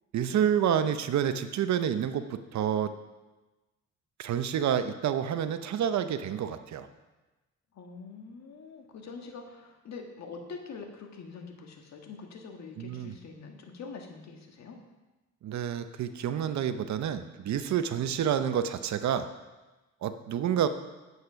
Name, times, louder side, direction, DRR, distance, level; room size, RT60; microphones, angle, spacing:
voice 1, 0.1-2.9 4.2-6.9 12.8-13.1 15.4-19.3 20.0-20.7, right 9 dB, 65° right, 10 dB, 0.8 m, -28 dB
voice 2, 7.7-14.8 18.0-18.2, left 4 dB, 60° left, 3 dB, 1.9 m, -45 dB
9.5 x 8.1 x 5.8 m, 1.1 s
cardioid pair, 90°, 30 cm